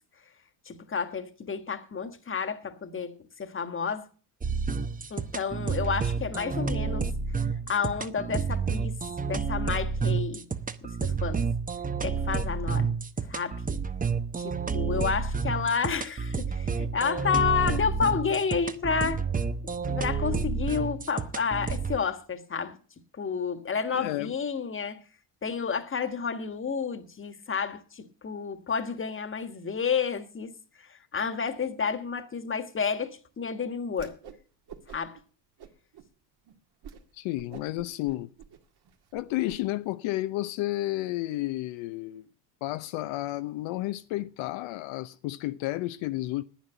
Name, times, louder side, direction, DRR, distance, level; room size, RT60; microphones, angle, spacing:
voice 1, 0.7-4.0 5.1-7.1 7.7-9.0 9.3-10.5 10.8-11.5 12.0-12.9 13.3-13.6 14.4-19.2 19.6-22.8 23.1-25.0 25.4-34.2 34.9-35.2, left 6 dB, 25° left, 1.5 m, -30 dB
sound 1, 4.4-22.0, right 5 dB, 15° right, 0.9 m, -30 dB
voice 2, 23.9-24.3 37.1-38.3 39.1-42.3 42.6-46.4, left 17 dB, 70° left, 0.8 m, -31 dB
Whoosh swoosh swish, 33.9-34.4 34.7-35.2 35.6-36.1 36.5-36.6 36.8-37.0 37.3-39.6, right 8 dB, 50° right, 2.1 m, -47 dB
10.0 x 9.2 x 8.0 m
supercardioid pair, 90°, 48 cm